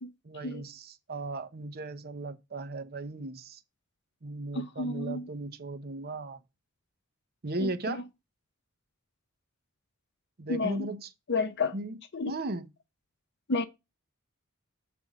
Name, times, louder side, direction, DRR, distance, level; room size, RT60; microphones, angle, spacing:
voice 1, 0.2-3.6 4.2-6.4 7.4-8.0 10.4-11.1 11.7-12.0 12.2-12.7, right 2 dB, 45° right, 0.8 m, -36 dB
voice 2, 4.5-5.3 7.6-8.0 10.5-10.9 11.3-11.7 12.1-12.3 13.5-13.6, left 3 dB, 55° left, 0.7 m, -31 dB
7.7 x 3.4 x 4.8 m
head